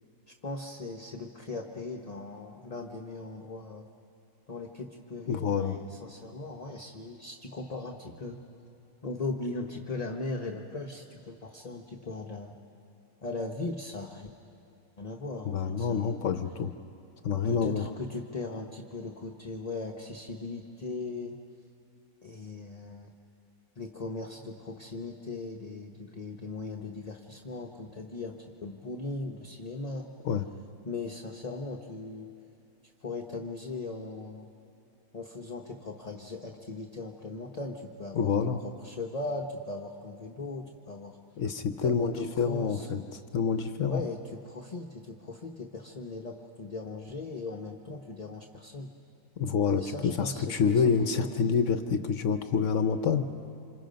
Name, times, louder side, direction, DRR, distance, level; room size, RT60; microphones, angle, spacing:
voice 1, 0.3-3.9 4.5-8.4 9.0-12.6 13.2-14.3 15.0-16.2 17.4-21.3 22.2-23.1 23.8-30.1 30.8-32.3 32.8-34.5 35.1-41.2 41.8-42.9 43.9-48.9 49.7-51.3, left 3 dB, 30° left, 1 dB, 0.9 m, -38 dB
voice 2, 5.3-5.8 15.4-16.7 17.2-17.8 30.2-30.4 38.1-38.6 41.4-44.0 49.4-53.3, left 6 dB, 60° left, 8 dB, 1.0 m, -27 dB
28.5 x 26.5 x 5.2 m, 2.7 s
omnidirectional pair, 1.6 m